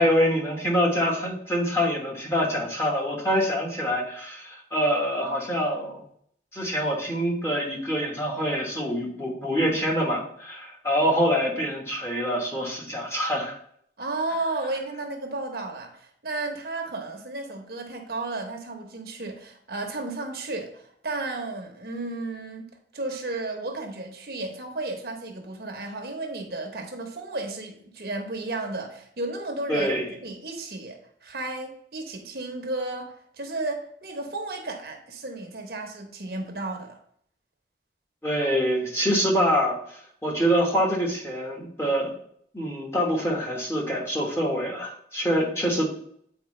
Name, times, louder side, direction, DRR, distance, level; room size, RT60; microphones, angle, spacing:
voice 1, 0.0-6.0 6.5-13.5 29.7-30.1 38.2-39.8 40.2-42.1 42.5-45.9, equal, 15° left, -3 dB, 1.3 m, -25 dB
voice 2, 14.0-22.7 22.9-29.9 30.2-37.0, right 2 dB, 60° right, 3 dB, 1.1 m, -33 dB
8.1 x 4.5 x 3.2 m, 0.66 s
head